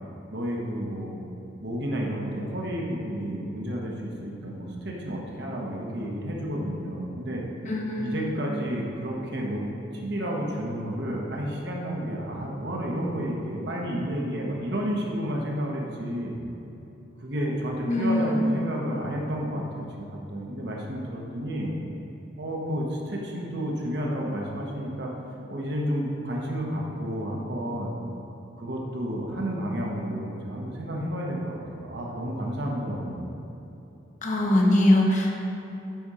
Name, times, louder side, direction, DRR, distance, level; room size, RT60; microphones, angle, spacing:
voice 1, 0.3-1.2 1.6-7.5 8.0-9.6 9.9-16.4 17.2-21.7 22.4-25.1 25.5-28.0 28.6-33.2, equal, 60° right, -2 dB, 1.1 m, -31 dB
voice 2, 7.7-8.3 17.9-18.4 34.2-35.3, left 1 dB, 40° left, 0 dB, 0.9 m, -22 dB
9.3 x 4.3 x 4.9 m, 3.0 s
head